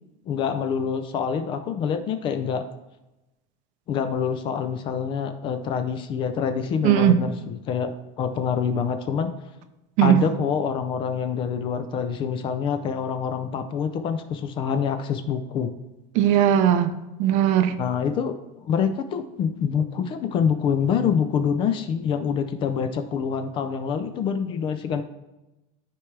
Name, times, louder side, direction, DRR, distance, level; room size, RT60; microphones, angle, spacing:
voice 1, 0.2-2.7 3.9-9.3 10.0-15.7 17.8-18.4 18.6-25.0, left 7 dB, 30° left, 9 dB, 0.5 m, -26 dB
voice 2, 6.8-7.2 10.0-10.2 16.1-17.7, right 10 dB, 45° right, 10 dB, 0.6 m, -19 dB
13.0 x 4.6 x 3.3 m, 0.99 s
cardioid pair, 175°, 17 cm